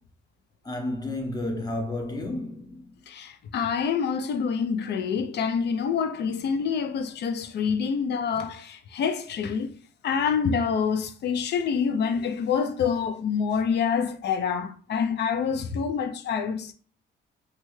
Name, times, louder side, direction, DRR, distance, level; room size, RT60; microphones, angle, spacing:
voice 1, 0.6-2.9, left 1 dB, 20° left, 0.8 m, -31 dB
voice 2, 3.1-9.7 10.0-16.7, left 6 dB, 60° left, 0.5 m, -27 dB
3.1 x 2.3 x 3.1 m
cardioid pair, 90°, 20 cm